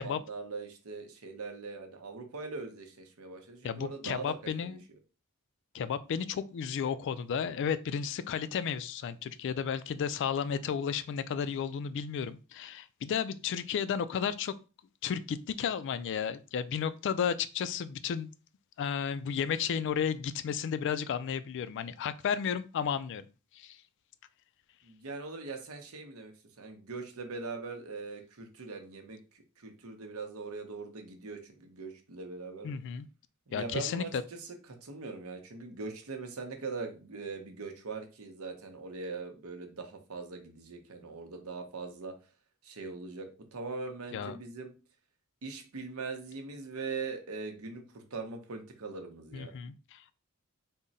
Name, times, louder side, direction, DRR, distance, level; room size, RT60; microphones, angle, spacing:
voice 1, 0.0-4.8 24.8-29.2 29.6-32.7 33.5-34.5 34.8-42.1 42.6-44.7 45.4-49.5, right 4 dB, 80° right, 4 dB, 0.8 m, -41 dB
voice 2, 3.6-4.8 5.7-14.5 15.0-18.3 18.8-23.3 23.5-23.8 32.6-33.1 33.5-34.2 44.1-44.4 49.3-50.1, left 7 dB, 55° left, 14 dB, 0.3 m, -33 dB
3.7 x 2.1 x 4.0 m, 0.33 s
head